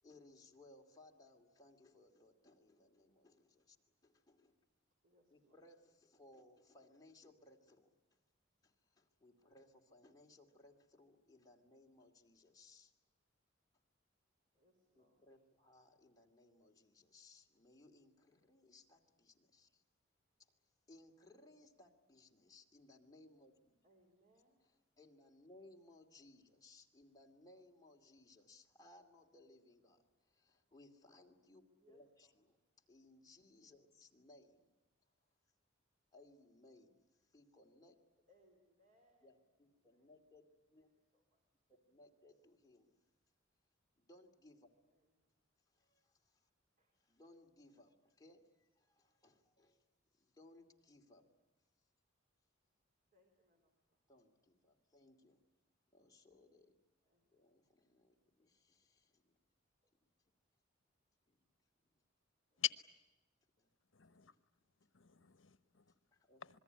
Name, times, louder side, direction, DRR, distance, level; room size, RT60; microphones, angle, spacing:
voice 1, 0.0-3.8 4.0-4.6 5.3-8.2 8.6-12.9 15.0-19.8 20.4-23.8 25.0-32.6 32.9-34.7 36.1-38.0 39.2-40.9 41.7-43.0 44.0-44.7 45.7-46.5 47.0-49.8 50.1-51.3 54.1-55.4 55.9-56.8 57.3-59.4 61.3-61.5 61.8-61.9 63.6-63.7 64.2-64.4 66.1-66.4, left 2 dB, 20° left, 1 dB, 2.7 m, -64 dB
voice 2, 5.0-5.6 14.5-15.4 23.8-24.6 31.8-32.3 38.3-39.4 39.7-40.1 40.8-40.9 41.1-42.1 44.9-45.4 46.8-47.0 53.1-54.1 57.0-57.6 58.4-58.5 59.8-60.0 62.5-62.6 65.3-65.4, right 1 dB, 45° right, 1 dB, 4.1 m, -75 dB
voice 3, 63.9-64.3 64.8-65.9 66.4-66.6, left 12 dB, 70° left, 12 dB, 1.0 m, -43 dB
26.5 x 21.5 x 9.7 m, 1.1 s
head